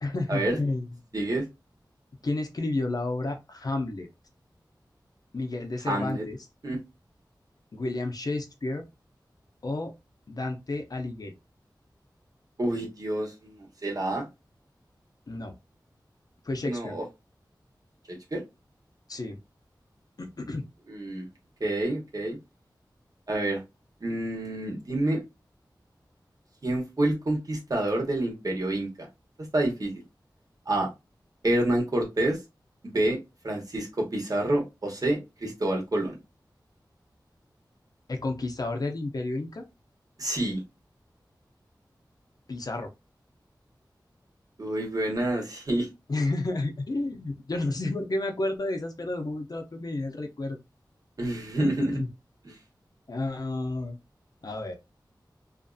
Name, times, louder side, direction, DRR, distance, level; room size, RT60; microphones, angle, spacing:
voice 1, 0.0-1.0 2.2-4.1 5.3-6.4 7.7-8.9 9.6-9.9 10.3-11.3 15.3-15.6 16.4-17.0 19.1-19.4 20.2-20.7 38.1-39.6 42.5-42.9 46.1-50.6 51.6-52.1 53.1-54.0 54.4-54.8, left 2 dB, 55° left, 0.6 m, -31 dB
voice 2, 1.1-1.4 5.9-6.2 6.6-6.8 12.6-14.2 16.7-17.0 18.3-18.4 20.9-21.3 21.6-22.4 23.3-23.6 24.0-25.2 26.6-28.9 29.5-30.0 30.7-30.9 31.4-32.4 32.8-33.2 33.4-36.2 40.2-40.6 44.6-45.9 51.2-51.9, right 1 dB, 50° right, 1.0 m, -28 dB
2.5 x 2.5 x 2.3 m
wide cardioid pair, 75°, 8 cm